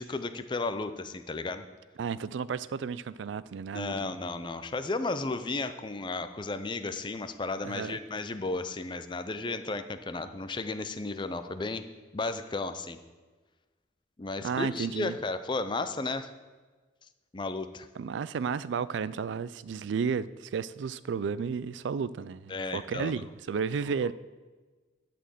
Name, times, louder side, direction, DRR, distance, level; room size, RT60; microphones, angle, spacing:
voice 1, 0.0-1.7 3.6-11.8 12.1-13.0 14.2-16.3 17.3-17.9 22.5-23.1, left 3 dB, 25° left, 0.5 m, -34 dB
voice 2, 2.0-4.1 7.6-8.0 14.4-15.1 18.0-24.1, right 6 dB, 80° right, 0.4 m, -32 dB
11.0 x 4.4 x 7.5 m
head